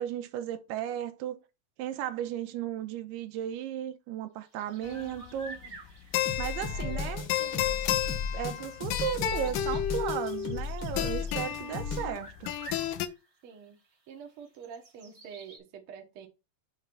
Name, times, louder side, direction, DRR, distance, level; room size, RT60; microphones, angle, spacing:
voice 1, 0.0-1.4 1.8-5.6 6.4-7.2 8.3-12.5, right 10 dB, 90° right, 2.7 m, -35 dB
sound 1, 4.4-15.6, right 2 dB, 35° right, 1.1 m, -52 dB
sound 2, 4.8-13.1, left 11 dB, 80° left, 2.0 m, -33 dB
sound 3, 6.2-12.1, left 5 dB, 50° left, 1.5 m, -35 dB
voice 2, 6.7-7.8 13.4-13.8 14.1-16.3, right 7 dB, 65° right, 1.4 m, -47 dB
7.0 x 3.3 x 6.0 m
omnidirectional pair, 4.5 m